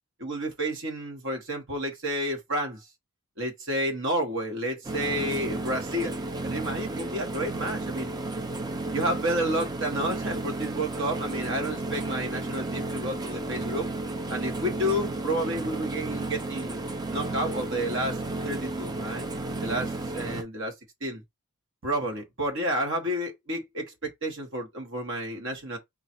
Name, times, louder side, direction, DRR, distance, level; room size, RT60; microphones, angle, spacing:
voice 1, 0.2-2.8 3.4-8.1 8.9-13.9 14.3-16.8 17.1-19.3 19.6-20.7 21.0-21.2 21.8-25.8, right 1 dB, 60° right, 1.3 m, -30 dB
sound 1, 4.8-20.4, right 2 dB, 20° right, 0.4 m, -33 dB
3.9 x 2.4 x 4.3 m
head